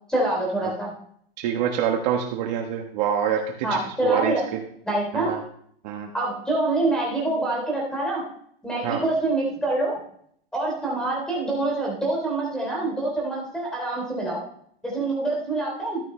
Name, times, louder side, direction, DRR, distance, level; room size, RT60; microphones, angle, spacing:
voice 1, 0.1-0.9 3.6-4.4 4.8-5.3 6.1-8.2 8.6-9.9 10.5-14.4 14.8-16.0, right 2 dB, ahead, -2 dB, 3.1 m, -25 dB
voice 2, 1.4-3.7 4.0-4.6 5.1-5.4 5.8-6.1 8.8-9.0, right 9 dB, 45° right, 3 dB, 1.2 m, -25 dB
13.5 x 11.0 x 3.2 m, 0.66 s
supercardioid pair, 160°, 30 cm